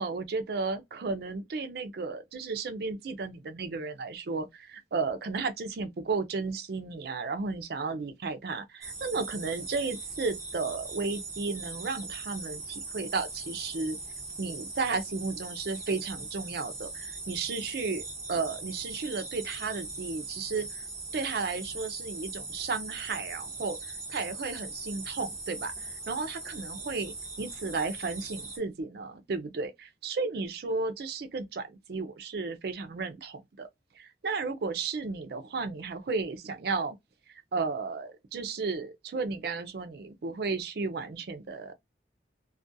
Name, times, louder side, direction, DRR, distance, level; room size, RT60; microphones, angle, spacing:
voice 1, 0.0-14.0 14.4-20.8 21.1-27.1 27.4-33.7 34.0-37.0 37.3-41.7, right 4 dB, 60° right, 0.4 m, -34 dB
sound 1, 8.8-28.6, right 3 dB, 20° right, 1.0 m, -40 dB
2.4 x 2.2 x 2.6 m
head